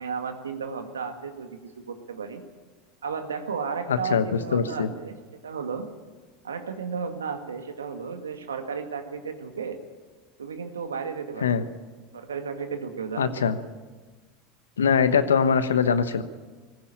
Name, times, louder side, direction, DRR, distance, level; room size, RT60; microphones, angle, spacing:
voice 1, 0.0-2.4 3.0-5.2 5.4-5.9 6.4-9.8 10.4-11.6 12.1-13.5, right 6 dB, 85° right, 7 dB, 1.9 m, -33 dB
voice 2, 3.9-4.9 11.4-11.6 13.2-13.6 14.8-16.2, left 6 dB, 85° left, 12 dB, 1.1 m, -22 dB
19.5 x 15.5 x 8.8 m, 1.3 s
hypercardioid pair, 85°, 0 cm